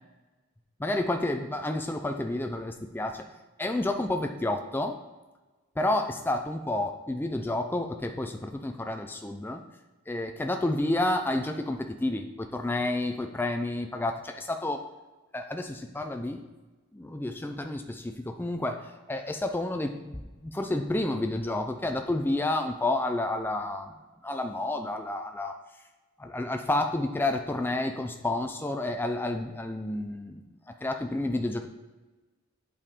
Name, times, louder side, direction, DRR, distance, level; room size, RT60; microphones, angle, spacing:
voice 1, 0.8-3.3 3.6-5.0 5.8-9.6 10.1-14.8 15.3-16.4 16.9-23.9 24.2-25.6 26.2-31.7, left 2 dB, 10° left, 5 dB, 0.3 m, -30 dB
8.4 x 5.0 x 3.6 m, 1.2 s
head